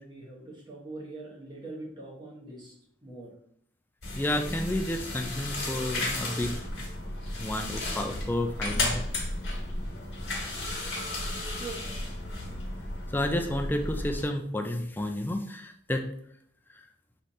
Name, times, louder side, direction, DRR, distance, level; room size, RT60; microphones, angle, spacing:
voice 1, 0.0-3.3 11.4-11.9, right 2 dB, 20° right, -4 dB, 1.1 m, -43 dB
sound 1, 4.0-14.2, left 2 dB, 55° left, 1.4 m, -34 dB
voice 2, 4.1-6.5 7.4-9.0 13.1-16.1, left 1 dB, 10° left, 5 dB, 0.3 m, -31 dB
5.7 x 3.2 x 2.7 m, 0.68 s
head